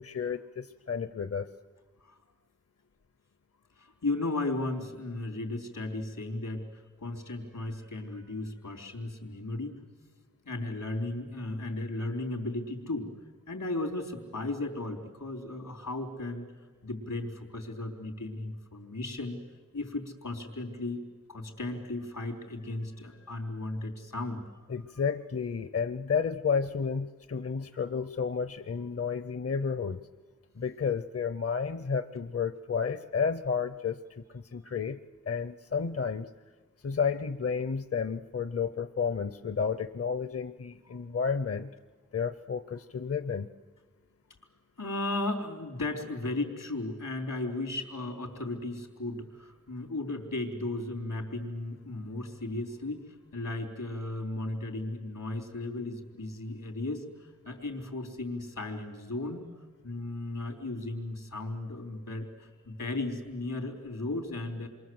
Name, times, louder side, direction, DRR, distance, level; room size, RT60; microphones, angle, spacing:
voice 1, 0.0-1.5 24.7-30.0 30.6-35.0 35.3-36.3 36.8-41.7 42.1-43.5, left 6 dB, 50° left, 11 dB, 0.7 m, -31 dB
voice 2, 3.8-9.8 10.4-13.1 13.5-16.5 16.8-19.4 19.7-21.0 21.3-24.4 44.8-59.4 59.8-64.7, left 2 dB, 85° left, 3 dB, 3.8 m, -35 dB
28.0 x 23.5 x 7.9 m, 1.4 s
wide cardioid pair, 60°, 31 cm